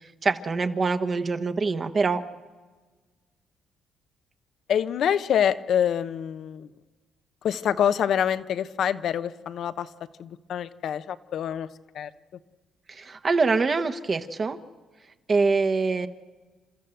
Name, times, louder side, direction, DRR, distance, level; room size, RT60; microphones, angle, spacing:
voice 1, 0.0-2.2 12.9-14.6 15.3-16.1, right 4 dB, 40° right, 7 dB, 1.3 m, -24 dB
voice 2, 4.7-6.7 7.4-9.9 10.2-11.7 11.9-12.1, left 9 dB, 70° left, 13 dB, 0.8 m, -26 dB
29.5 x 13.5 x 7.9 m, 1.3 s
cardioid pair, 90°, 0 cm